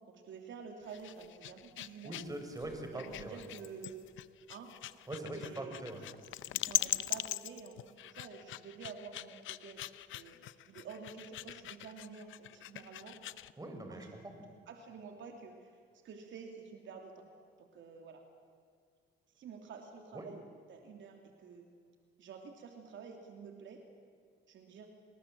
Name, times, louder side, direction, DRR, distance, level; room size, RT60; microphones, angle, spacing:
voice 1, 0.1-2.2 2.9-4.1 4.5-4.8 5.3-5.8 6.6-13.2 13.9-14.1 14.7-17.3 17.6-18.2 19.3-20.4 20.7-21.6 22.2-23.8 24.5-24.9, right 5 dB, 70° right, 3 dB, 3.0 m, -49 dB
sound 1, 0.8-13.5, left 15 dB, 80° left, 0.7 m, -41 dB
voice 2, 2.0-3.4 5.1-6.0 13.6-14.4 20.1-20.3, right 2 dB, 15° right, 5 dB, 5.3 m, -42 dB
29.5 x 21.0 x 7.6 m, 2.1 s
cardioid pair, 90°, 20 cm